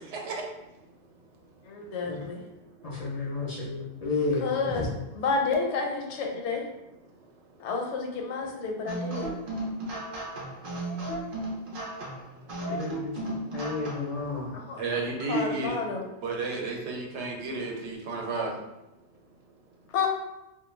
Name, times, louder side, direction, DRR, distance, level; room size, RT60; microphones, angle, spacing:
voice 1, 0.1-0.4 14.8-15.8 16.2-18.5, right 3 dB, 85° right, 0 dB, 0.9 m, -32 dB
voice 2, 1.6-2.4 4.4-4.9 5.2-6.6 7.6-9.3 14.5-14.8 15.3-16.0 19.9-20.1, left 4 dB, 80° left, 2 dB, 0.9 m, -30 dB
voice 3, 2.8-4.9 12.7-14.5, left 3 dB, 55° left, -5 dB, 0.4 m, -32 dB
sound 1, 8.9-14.2, right 1 dB, 60° right, 0.6 m, -35 dB
2.3 x 2.2 x 3.1 m, 0.95 s
omnidirectional pair, 1.1 m